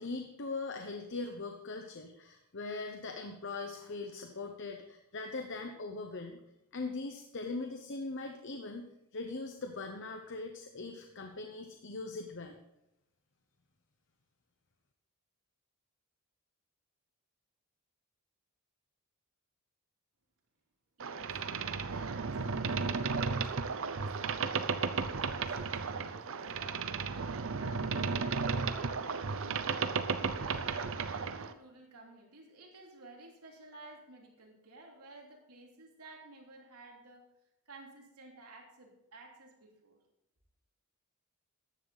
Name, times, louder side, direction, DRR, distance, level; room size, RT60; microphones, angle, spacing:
voice 1, 0.0-6.4 6.7-8.9 9.1-12.6, left 3 dB, 55° left, 5 dB, 0.9 m, -40 dB
Boat Water vehicle, 21.0-31.5, right 5 dB, 60° right, 0.7 m, -34 dB
voice 2, 21.0-37.2 37.6-40.0, right 2 dB, 85° right, 0 dB, 3.2 m, -53 dB
14.0 x 10.5 x 4.1 m, 0.87 s
head